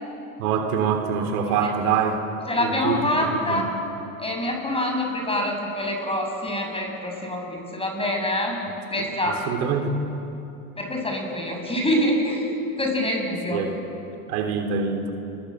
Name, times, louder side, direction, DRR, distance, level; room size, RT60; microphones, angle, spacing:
voice 1, 0.4-2.2 2.6-3.6 9.0-10.1 13.5-13.8 14.3-15.1, right 6 dB, 70° right, 5 dB, 3.3 m, -25 dB
voice 2, 2.5-3.6 4.2-8.6 8.9-9.4 10.8-13.6, left 1 dB, 10° left, 1 dB, 7.6 m, -25 dB
29.0 x 23.5 x 7.8 m, 2.8 s
hypercardioid pair, 95°, 45 cm